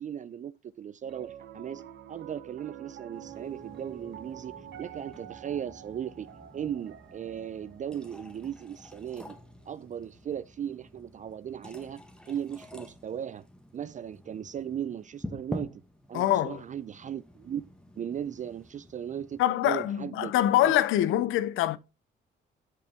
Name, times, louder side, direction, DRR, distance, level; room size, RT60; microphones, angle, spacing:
voice 1, 0.0-1.8 2.1-9.4 9.7-13.4 13.7-15.8 16.1-17.6 18.0-20.3 20.7-20.8, right 9 dB, 40° right, 0.4 m, -37 dB
Piano, 1.0-11.4, right 11 dB, 65° right, 0.8 m, -48 dB
sound 1, 3.1-19.4, left 1 dB, 5° left, 1.1 m, -47 dB
voice 2, 16.1-16.6 19.4-21.8, left 13 dB, 90° left, 0.5 m, -24 dB
7.6 x 5.2 x 3.5 m
cardioid pair, 90°, 20 cm